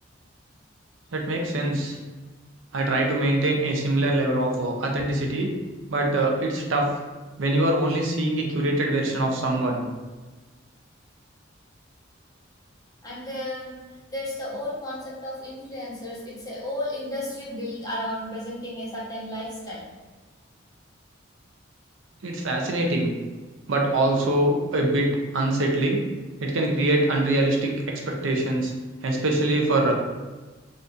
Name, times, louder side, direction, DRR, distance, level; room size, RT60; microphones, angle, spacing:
voice 1, 1.1-2.0 2.7-5.5 5.9-6.9 7.4-9.8 22.2-23.1 23.7-26.0 26.4-27.7 28.1-28.7 29.0-29.9, right 1 dB, 85° right, 1 dB, 0.6 m, -23 dB
voice 2, 13.0-13.8 14.1-19.8, left 1 dB, 20° left, -6 dB, 0.9 m, -33 dB
2.7 x 2.6 x 3.5 m, 1.3 s
head